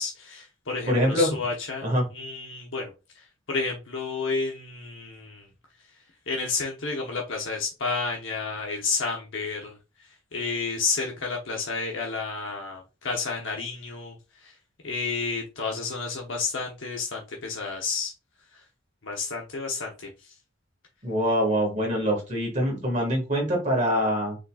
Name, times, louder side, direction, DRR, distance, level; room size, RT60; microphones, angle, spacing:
voice 1, 0.0-1.8 2.1-2.9 3.5-5.4 6.3-9.7 10.3-14.1 14.8-18.1 19.0-19.9, left 4 dB, 70° left, 0 dB, 1.0 m, -30 dB
voice 2, 0.9-1.4 1.8-2.1 21.0-24.4, equal, 40° right, 0 dB, 1.9 m, -24 dB
4.9 x 4.0 x 2.4 m, 0.29 s
head